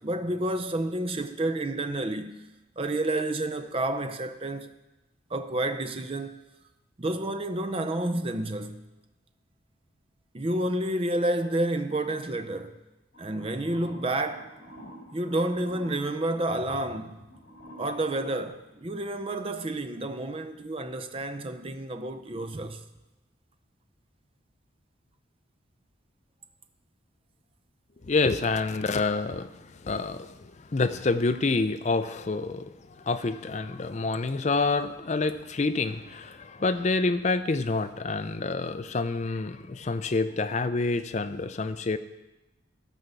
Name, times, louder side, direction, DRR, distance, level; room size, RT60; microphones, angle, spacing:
voice 1, 0.0-2.4 2.8-4.7 5.3-6.4 7.0-8.8 10.3-12.8 13.2-14.5 15.1-17.2 17.8-22.8, right 1 dB, 30° right, 0.5 m, -30 dB
sound 1, 13.1-18.5, equal, 65° left, 2.7 m, -48 dB
voice 2, 28.0-42.0, left 3 dB, 35° left, 0.4 m, -28 dB
13.5 x 4.6 x 6.7 m
head